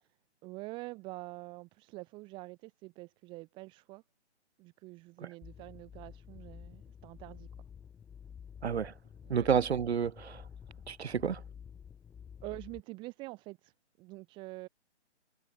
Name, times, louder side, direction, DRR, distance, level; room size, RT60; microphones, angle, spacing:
voice 1, 0.4-4.0 4.6-7.5 9.2-9.5 12.4-14.7, right 22 dB, 15° right, 1.5 m, -46 dB
sound 1, 5.4-12.8, left 7 dB, 5° left, 0.7 m, -50 dB
voice 2, 8.6-8.9 9.3-10.4 10.9-11.4, right 7 dB, 65° right, 1.1 m, -30 dB
hypercardioid pair, 155°, 35 cm